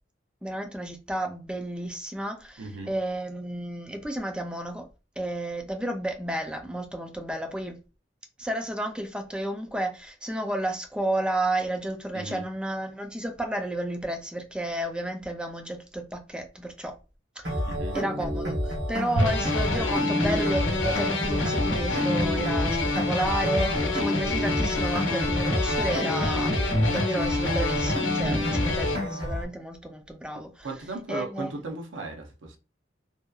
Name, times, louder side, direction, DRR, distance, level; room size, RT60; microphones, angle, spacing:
voice 1, 0.4-4.8 5.2-7.8 8.4-16.9 17.4-17.6 17.9-26.6 26.9-30.7 31.1-31.5, right 1 dB, 5° right, 0.3 m, -32 dB
voice 2, 2.6-2.9 12.1-12.4 17.7-18.0 28.3-28.6 30.6-32.6, right 3 dB, 85° right, 0.6 m, -36 dB
sound 1, 17.4-29.4, equal, 65° right, 0.9 m, -29 dB
sound 2, 19.2-29.0, left 2 dB, 80° left, 0.7 m, -27 dB
2.7 x 2.2 x 2.2 m
head